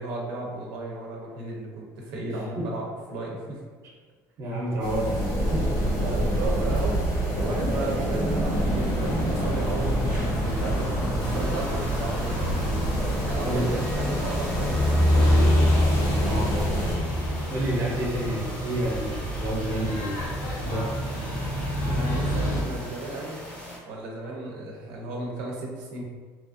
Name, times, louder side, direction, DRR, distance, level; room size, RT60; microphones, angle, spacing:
voice 1, 0.0-2.8 3.1-3.6 6.0-7.0 7.4-12.5 13.2-15.2 21.9-23.4 23.8-26.0, right 2 dB, 85° right, -2 dB, 0.6 m, -34 dB
voice 2, 2.3-2.7 4.4-5.7 13.4-13.8 16.2-16.7 17.5-20.9, right 1 dB, 45° right, -3 dB, 0.7 m, -30 dB
sound 1, 4.8-16.9, equal, 85° left, 1.2 m, -27 dB
sound 2, 8.5-22.6, equal, 65° left, 0.9 m, -27 dB
sound 3, 11.2-23.8, equal, 20° left, 0.6 m, -41 dB
2.9 x 2.4 x 2.5 m, 1.5 s
cardioid pair, 155°, 7 cm